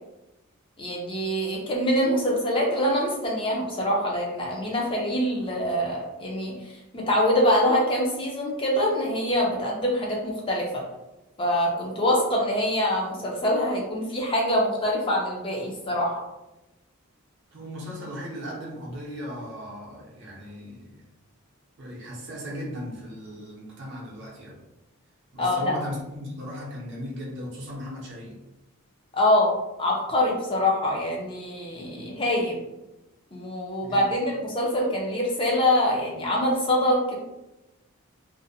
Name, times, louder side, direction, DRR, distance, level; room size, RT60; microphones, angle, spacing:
voice 1, 0.8-10.8 11.4-16.2 25.4-25.7 29.1-29.5 29.8-32.6 33.3-37.2, left 1 dB, 25° left, -2 dB, 0.4 m, -24 dB
voice 2, 17.5-21.0 21.8-24.6 25.3-28.4 33.8-34.1, equal, 55° right, -4 dB, 0.6 m, -37 dB
2.5 x 2.0 x 2.6 m, 0.98 s
head